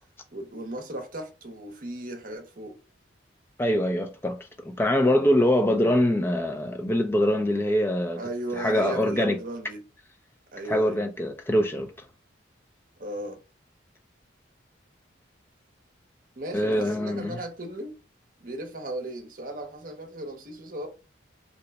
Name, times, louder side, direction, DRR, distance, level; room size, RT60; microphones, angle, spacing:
voice 1, 0.3-2.8 8.2-9.8 10.5-11.0 13.0-13.4 16.4-17.9 18.4-20.9, right 1 dB, 45° right, 0.7 m, -36 dB
voice 2, 3.6-4.4 4.6-8.2 8.6-9.4 10.6-11.9 16.5-17.4, left 1 dB, 10° left, 0.4 m, -24 dB
2.9 x 2.2 x 3.9 m
head